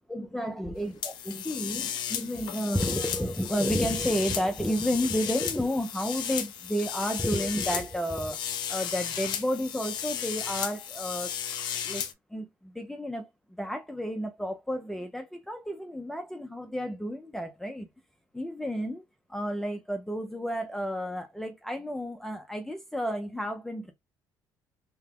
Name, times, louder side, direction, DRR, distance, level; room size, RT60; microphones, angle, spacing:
voice 1, 0.1-11.3 11.8-12.0 12.3-17.9 18.3-19.0 19.3-23.9, equal, 5° left, 0.4 m, -31 dB
sound 1, 1.0-12.1, left 9 dB, 70° left, 0.6 m, -34 dB
2.8 x 2.2 x 3.4 m
cardioid pair, 120°, 8 cm